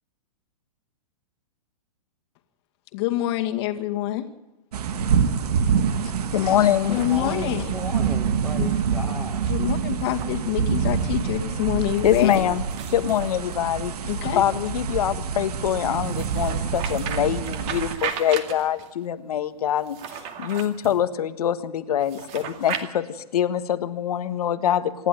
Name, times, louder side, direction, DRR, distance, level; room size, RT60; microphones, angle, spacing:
voice 1, 2.9-4.3 6.9-7.7 9.5-12.5 14.0-14.4, left 14 dB, 40° left, 5 dB, 2.1 m, -26 dB
sound 1, 4.7-18.0, right 7 dB, 75° right, 1.7 m, -26 dB
voice 2, 6.3-7.0 8.6-8.7 12.0-12.6 12.9-14.0 14.4-20.0 20.4-25.1, left 10 dB, 70° left, 12 dB, 1.6 m, -24 dB
voice 3, 6.8-9.4, left 1 dB, ahead, 2 dB, 2.0 m, -35 dB
sound 2, 6.8-7.7 10.0-10.3 12.0-13.9 16.0-18.9 19.8-21.0 22.0-22.8, right 8 dB, 35° right, 2.3 m, -36 dB
26.5 x 11.5 x 9.3 m, 0.99 s
hypercardioid pair, 150°, 20 cm